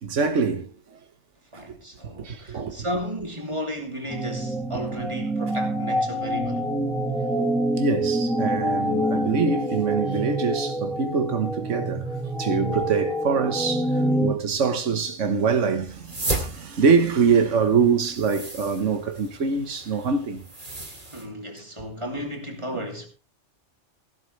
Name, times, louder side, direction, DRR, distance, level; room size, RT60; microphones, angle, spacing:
voice 1, 0.0-0.7 1.5-1.8 2.2-2.9 7.4-7.5 7.8-20.4 22.7-22.8, right 5 dB, 85° right, 1.6 m, -24 dB
voice 2, 1.5-6.7 21.1-23.1, equal, 25° right, 2.9 m, -33 dB
sound 1, 4.1-14.3, right 1 dB, ahead, 1.6 m, -26 dB
sound 2, 15.9-21.3, right 2 dB, 40° right, 2.9 m, -35 dB
16.0 x 11.5 x 3.3 m
omnidirectional pair, 1.2 m